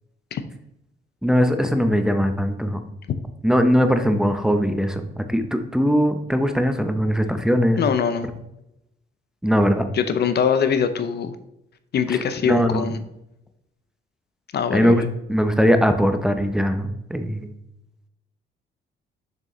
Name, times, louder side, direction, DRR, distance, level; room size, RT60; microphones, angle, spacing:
voice 1, 1.2-2.8 3.4-7.8 9.4-9.8 12.4-12.9 14.7-15.0 15.3-17.5, equal, 5° right, 7 dB, 0.7 m, -20 dB
voice 2, 7.8-8.3 9.9-11.4 11.9-13.0 14.5-15.1, left 7 dB, 55° left, 10 dB, 0.6 m, -22 dB
6.7 x 6.2 x 3.2 m, 0.85 s
cardioid pair, 90°, 20 cm